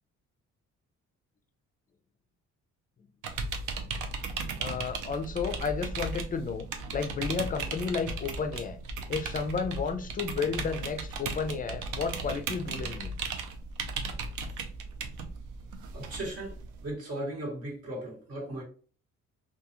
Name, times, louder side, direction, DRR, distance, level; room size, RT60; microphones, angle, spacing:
sound 1, 3.2-16.9, right 4 dB, 80° right, 0.5 m, -36 dB
voice 1, 4.6-6.7 6.9-8.8 9.1-13.2, left 5 dB, 30° left, 0.4 m, -32 dB
voice 2, 15.9-18.6, right 1 dB, 55° right, 1.3 m, -37 dB
2.4 x 2.3 x 2.8 m
cardioid pair, 90°, 30 cm